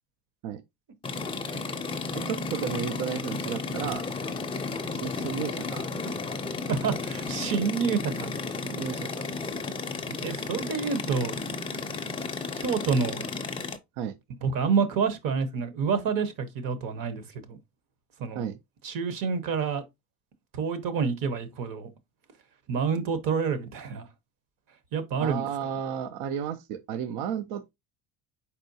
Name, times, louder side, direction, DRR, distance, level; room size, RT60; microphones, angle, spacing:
sound 1, 1.0-13.8, left 4 dB, 15° left, 0.4 m, -33 dB
voice 1, 2.2-4.1 4.9-6.2 8.6-9.1 14.0-14.2 18.3-18.6 25.2-27.7, right 8 dB, 85° right, 0.6 m, -33 dB
voice 2, 6.7-8.3 10.2-11.4 12.5-13.2 14.4-17.6 18.2-18.5 18.8-19.8 20.5-21.9 22.7-24.1 24.9-25.4, right 6 dB, 55° right, 1.1 m, -28 dB
4.6 x 4.2 x 2.7 m
cardioid pair, 135°, 40 cm